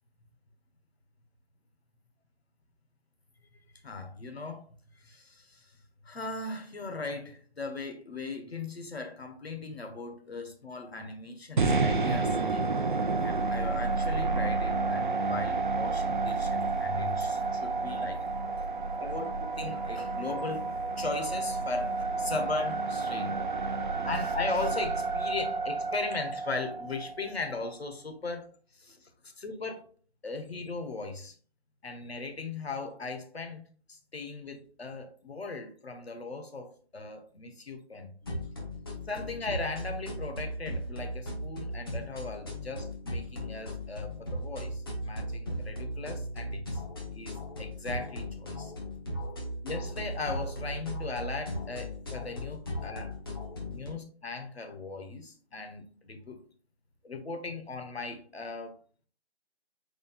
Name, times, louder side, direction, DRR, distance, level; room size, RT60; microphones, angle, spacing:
voice 1, 3.8-4.7 4.9-5.7 6.0-12.8 13.2-18.2 18.9-23.4 24.0-29.1 29.4-29.9 30.2-31.3 31.8-38.1 39.1-46.8 47.1-48.7 49.6-53.2 53.5-56.4 57.0-58.8, left 3 dB, 70° left, 1.3 m, -38 dB
sound 1, 11.6-27.7, right 3 dB, 50° right, 0.5 m, -30 dB
sound 2, 38.2-53.9, equal, 20° left, 0.8 m, -37 dB
5.4 x 4.0 x 2.4 m
figure-of-eight pair, 160°, 32 cm